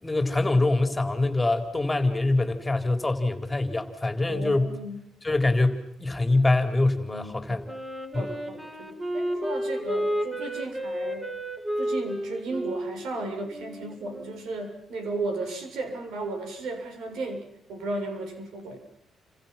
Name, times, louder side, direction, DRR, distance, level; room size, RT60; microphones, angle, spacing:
voice 1, 0.0-4.7 5.2-7.7 8.1-8.3, left 2 dB, 15° left, 7 dB, 3.9 m, -24 dB
voice 2, 4.3-5.0 7.1-7.6 8.1-11.3 11.8-18.8, right 2 dB, 80° right, 6 dB, 7.3 m, -34 dB
Wind instrument woodwind instrument, 7.6-14.4, equal, 15° right, 5.7 m, -32 dB
30.0 x 26.5 x 5.9 m, 0.74 s
cardioid pair, 90°, 0 cm